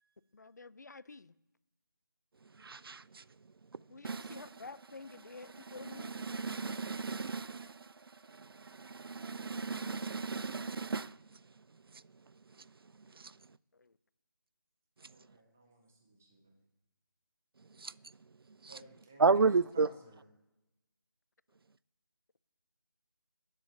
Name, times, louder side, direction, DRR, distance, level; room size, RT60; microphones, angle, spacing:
voice 1, 0.3-1.3 3.9-6.1 13.8-13.9, left 3 dB, 50° left, 0.5 m, -49 dB
voice 2, 2.6-3.2 4.0-4.4 5.9-7.9 8.4-11.1 17.8-17.9 18.6-18.7 19.2-19.9, right 4 dB, 75° right, 0.4 m, -32 dB
voice 3, 15.0-16.6 18.7-20.3, right 2 dB, 5° right, 0.5 m, -54 dB
14.0 x 7.3 x 9.3 m
figure-of-eight pair, 175°, 12 cm